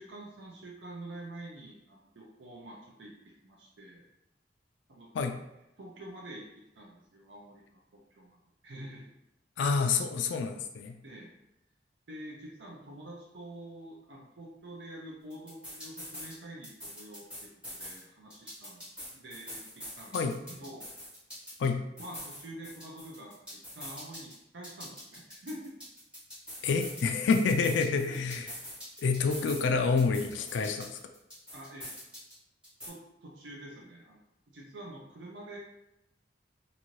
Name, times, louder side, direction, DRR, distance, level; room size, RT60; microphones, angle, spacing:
voice 1, 0.0-4.0 4.9-5.1 5.8-6.5 6.8-8.4 8.6-9.1 11.0-11.3 12.1-18.8 19.1-20.2 20.5-20.9 22.0-25.7 27.7-28.2 31.5-31.9 32.9-34.2 34.5-35.6, right 1 dB, 80° right, -3 dB, 0.6 m, -47 dB
voice 2, 9.6-11.0 20.1-20.4 21.6-21.8 26.6-28.5 29.0-30.9, left 4 dB, 80° left, 5 dB, 0.3 m, -28 dB
sound 1, 15.3-16.4 16.6-18.0 18.3-21.7 22.0-24.3 24.6-27.0 27.3-29.7 30.0-32.3 32.6-32.9, equal, 5° right, 1.2 m, -44 dB
2.6 x 2.6 x 3.0 m, 0.89 s
head